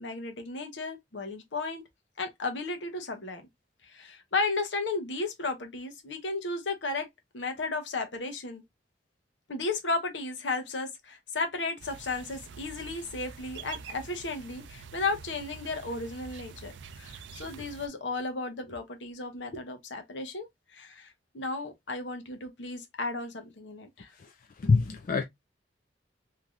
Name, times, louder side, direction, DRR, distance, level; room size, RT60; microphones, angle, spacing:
voice 1, 0.0-1.8 2.2-3.4 3.9-7.1 7.3-8.6 9.5-21.1 21.3-24.1, left 3 dB, 80° left, 0.9 m, -34 dB
sound 1, 11.8-17.9, right 6 dB, 85° right, 0.4 m, -46 dB
voice 2, 24.6-25.2, left 4 dB, 50° left, 0.4 m, -24 dB
3.3 x 2.8 x 2.3 m
head